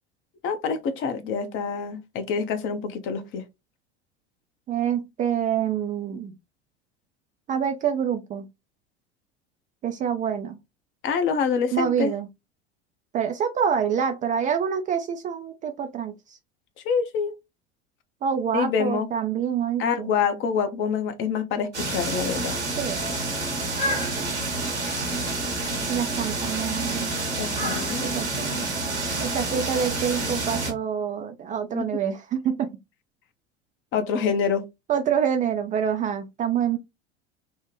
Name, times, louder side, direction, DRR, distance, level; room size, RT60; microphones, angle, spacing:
voice 1, 0.4-3.4 11.0-12.1 16.8-17.3 18.5-19.1 19.8-22.6 27.4-28.1 31.7-31.8 33.9-34.6, left 6 dB, 35° left, 0.7 m, -26 dB
voice 2, 4.7-6.3 7.5-8.5 9.8-10.6 11.7-12.3 13.1-16.4 18.2-20.1 22.8-23.1 23.9-24.1 25.9-27.1 28.0-28.7 29.2-32.7 34.9-36.8, right 8 dB, 25° right, 0.4 m, -26 dB
sound 1, 21.7-30.7, right 2 dB, 85° right, 1.1 m, -28 dB
3.3 x 2.1 x 3.0 m
figure-of-eight pair, 75°, 33 cm